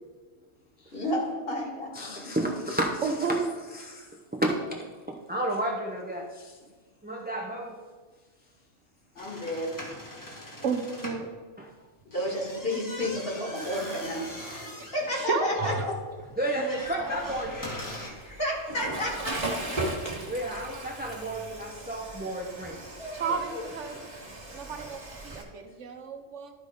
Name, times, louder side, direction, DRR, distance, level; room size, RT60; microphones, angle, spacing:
voice 1, 0.9-2.6 9.2-9.8 12.1-14.3 14.7-15.9 18.0-19.4 20.0-20.1 23.0-23.7, left 1 dB, 50° left, -2 dB, 2.1 m, -32 dB
voice 2, 1.9-3.4 3.7-6.6 7.0-7.8 11.6-11.7 15.6-15.7 16.4-17.7 20.3-22.8 24.5-24.6, right 1 dB, 10° right, 0 dB, 0.5 m, -32 dB
voice 3, 3.0-3.5 10.6-11.3 14.7-15.9 23.1-24.0 24.5-26.5, right 5 dB, 75° right, 5 dB, 1.2 m, -32 dB
sound 1, 9.2-11.3 12.0-18.1, equal, 15° left, 1.2 m, -40 dB
Water / Toilet flush, 17.1-25.4, right 2 dB, 35° right, 1.5 m, -37 dB
12.0 x 4.1 x 4.9 m, 1.4 s
omnidirectional pair, 1.3 m